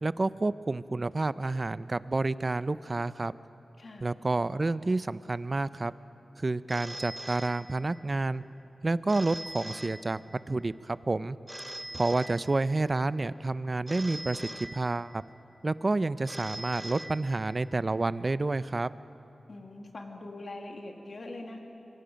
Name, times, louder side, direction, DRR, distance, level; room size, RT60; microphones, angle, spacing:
voice 1, 0.0-3.3 4.0-5.9 6.4-8.4 8.8-10.2 10.5-11.4 11.9-15.2 15.6-18.9, right 2 dB, 40° right, 15 dB, 0.5 m, -29 dB
voice 2, 3.8-4.1 12.3-12.4 19.5-21.6, left 2 dB, 60° left, 2 dB, 2.5 m, -42 dB
Telephone, 6.7-8.2 9.1-10.6 11.5-13.0 13.9-15.4 16.3-17.8, right 1 dB, 20° right, 0.8 m, -42 dB
26.0 x 23.5 x 5.2 m, 3.0 s
wide cardioid pair, 70°, 0 cm